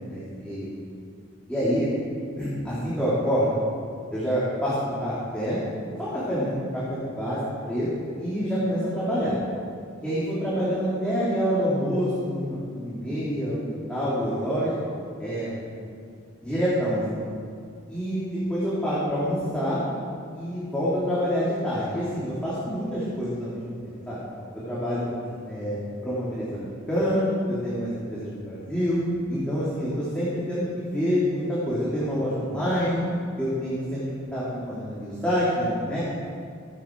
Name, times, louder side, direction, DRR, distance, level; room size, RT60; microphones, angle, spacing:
voice 1, 0.1-0.7 1.5-1.9 2.4-3.5 4.1-5.6 6.0-7.4 7.6-7.9 8.2-9.3 10.0-14.7 15.2-15.5 16.4-17.0 17.9-19.8 20.3-24.2 24.6-25.8 26.0-29.0 29.3-33.0 33.4-34.0 34.3-36.0, equal, 5° left, -10 dB, 3.4 m, -27 dB
22.0 x 9.6 x 4.8 m, 2.3 s
head